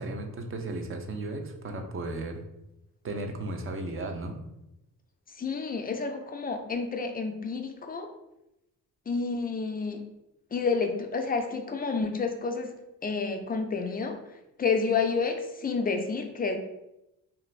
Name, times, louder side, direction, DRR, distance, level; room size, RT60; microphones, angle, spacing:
voice 1, 0.0-2.4 3.0-4.4, right 2 dB, 35° right, 5 dB, 0.5 m, -35 dB
voice 2, 5.4-8.1 9.1-10.0 10.5-14.2 14.6-16.6, left 4 dB, 25° left, 5 dB, 0.3 m, -30 dB
2.5 x 2.4 x 3.1 m, 0.90 s
cardioid pair, 90°, 36 cm